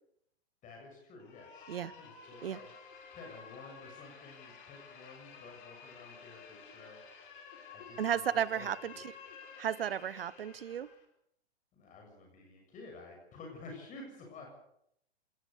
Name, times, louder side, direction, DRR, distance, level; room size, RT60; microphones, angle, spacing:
voice 1, 0.6-2.7 3.1-7.0 7.7-9.0 11.7-14.5, left 3 dB, 25° left, 1 dB, 7.2 m, -51 dB
sound 1, 1.2-11.1, left 6 dB, 50° left, 4.8 m, -52 dB
voice 2, 8.0-9.1 9.6-10.9, right 9 dB, 60° right, 20 dB, 1.1 m, -34 dB
26.5 x 19.0 x 6.8 m, 0.75 s
figure-of-eight pair, 110°, 33 cm